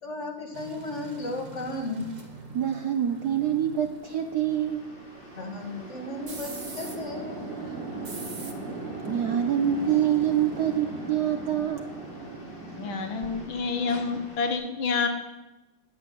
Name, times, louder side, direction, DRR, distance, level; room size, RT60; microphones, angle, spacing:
voice 1, 0.0-2.1 5.4-7.5, left 2 dB, 35° left, 2 dB, 1.9 m, -35 dB
sound 1, 0.5-13.7 14.1-14.3, right 2 dB, 30° right, 0.9 m, -47 dB
Chatter / Traffic noise roadway noise / Train, 0.8-14.2, right 3 dB, 85° right, 4.0 m, -40 dB
voice 2, 2.5-4.9 9.1-11.9, right 10 dB, 65° right, 7 dB, 1.0 m, -26 dB
sound 2, 4.1-14.5, left 1 dB, 55° left, 3.8 m, -51 dB
voice 3, 12.8-15.1, left 4 dB, 70° left, 6 dB, 2.0 m, -28 dB
9.8 x 8.5 x 9.6 m, 1.1 s
omnidirectional pair, 2.3 m